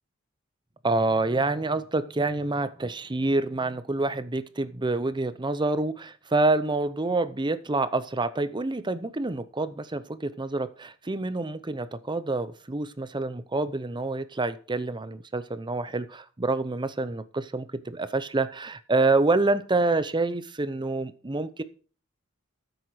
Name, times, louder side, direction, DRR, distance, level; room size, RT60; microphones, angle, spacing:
voice 1, 0.8-21.6, right 2 dB, 20° right, 0.7 m, -27 dB
13.5 x 8.0 x 4.8 m
head